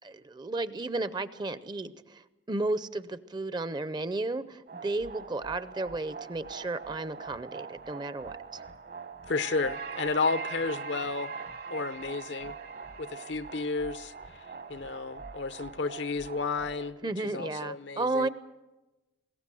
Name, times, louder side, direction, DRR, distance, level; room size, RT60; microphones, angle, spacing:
voice 1, 0.0-2.2 2.5-8.4 17.0-18.3, right 2 dB, 25° right, 0.6 m, -33 dB
sound 1, 4.7-16.9, right 5 dB, 55° right, 1.3 m, -42 dB
voice 2, 9.3-11.3 11.7-12.5 13.0-14.1 14.7-18.3, left 4 dB, 70° left, 0.7 m, -32 dB
21.0 x 18.0 x 7.6 m
head